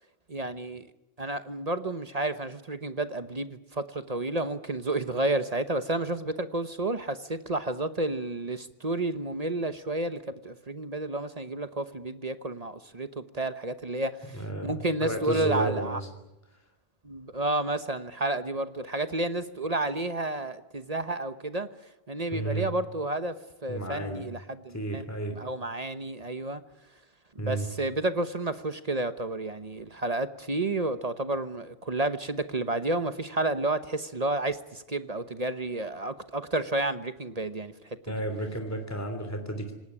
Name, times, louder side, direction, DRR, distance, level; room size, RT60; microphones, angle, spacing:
voice 1, 0.3-0.9 1.2-16.0 17.0-21.7 22.1-25.0 25.3-26.6 27.4-37.7, right 2 dB, 40° right, 11 dB, 1.1 m, -31 dB
voice 2, 14.3-16.1 22.3-22.7 23.7-24.3 24.7-25.3 27.4-27.7 38.1-39.8, right 2 dB, 15° left, 6 dB, 3.1 m, -32 dB
26.5 x 19.5 x 9.9 m, 0.91 s
omnidirectional pair, 1.1 m